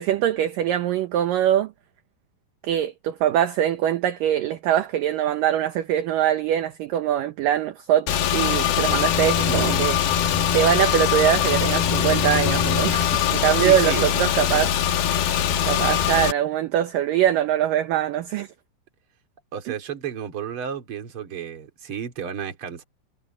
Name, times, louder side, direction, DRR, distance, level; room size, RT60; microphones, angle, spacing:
voice 1, 0.0-1.7 2.6-10.0 10.5-14.8 15.2-15.3 15.6-18.5, right 11 dB, 70° right, 2.3 m, -23 dB
Car / Engine, 8.1-16.3, left 9 dB, 65° left, 3.3 m, -22 dB
voice 2, 9.5-9.9 13.6-14.1 19.5-22.8, right 8 dB, 35° right, 2.7 m, -32 dB
omnidirectional pair, 4.8 m